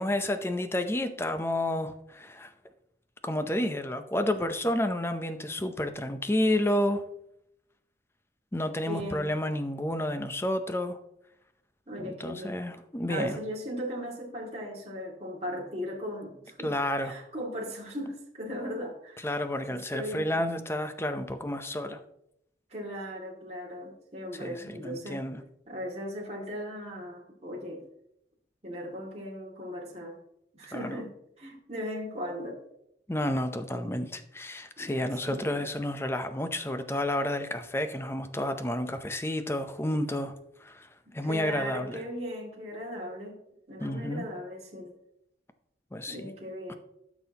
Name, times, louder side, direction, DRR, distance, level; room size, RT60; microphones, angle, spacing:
voice 1, 0.0-2.5 3.2-7.0 8.5-11.0 12.0-13.4 16.6-17.1 19.2-22.0 24.4-25.4 30.7-30.9 33.1-40.3 40.6-40.9 41.1-42.0 43.8-44.3 45.9-46.3 46.7-46.8, left 1 dB, 15° left, 9 dB, 0.6 m, -30 dB
voice 2, 8.9-9.3 11.9-12.6 13.1-19.3 19.7-20.4 22.7-25.2 25.7-27.9 28.6-30.2 30.5-32.6 33.7-33.8 34.8-35.7 41.1-43.4 43.7-44.9 46.1-46.7, equal, 35° right, -4 dB, 2.2 m, -38 dB
13.0 x 6.2 x 2.9 m, 0.78 s
head